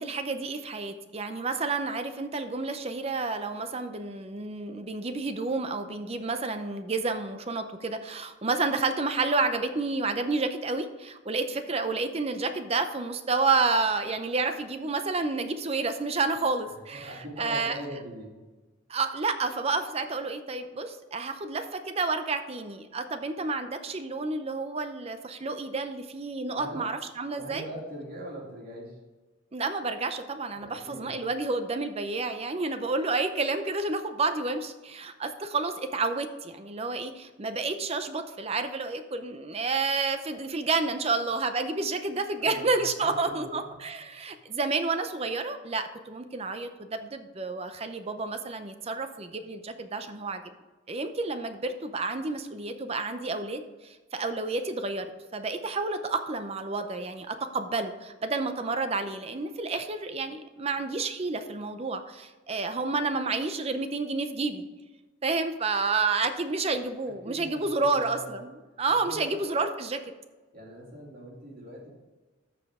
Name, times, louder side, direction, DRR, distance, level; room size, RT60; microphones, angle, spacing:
voice 1, 0.0-17.8 18.9-27.7 29.5-50.4 50.9-64.7 65.2-68.5 68.8-70.0, right 3 dB, 30° right, 9 dB, 0.6 m, -30 dB
voice 2, 16.9-18.4 26.5-26.8 27.4-29.0 30.5-31.2 42.4-43.8 44.2-44.3 67.0-68.4 69.0-69.5 70.5-71.9, equal, 45° right, -3 dB, 2.7 m, -41 dB
14.0 x 5.0 x 3.6 m, 1.2 s
head